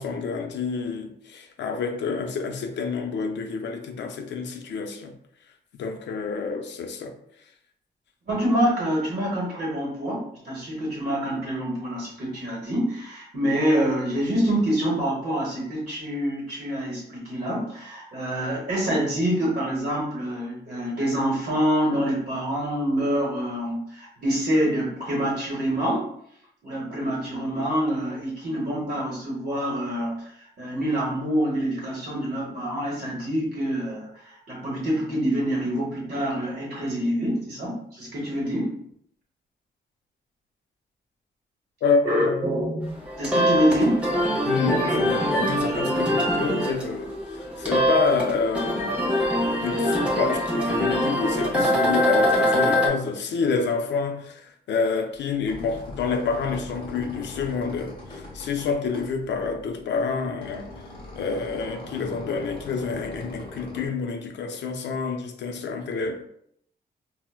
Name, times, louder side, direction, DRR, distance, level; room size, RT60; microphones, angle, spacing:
voice 1, 0.0-5.1 5.8-7.1 41.8-42.5 44.4-49.0 49.6-60.7 61.2-66.3, left 5 dB, 90° left, 0.5 m, -28 dB
voice 2, 8.3-26.1 26.6-38.8 42.0-42.9 43.2-44.1 44.8-45.0, equal, 45° right, 0.9 m, -26 dB
sound 1, 42.9-52.9, equal, 5° right, 0.5 m, -23 dB
sound 2, 55.2-63.9, left 2 dB, 30° left, 1.0 m, -41 dB
4.3 x 2.0 x 2.2 m
wide cardioid pair, 175°, 18 cm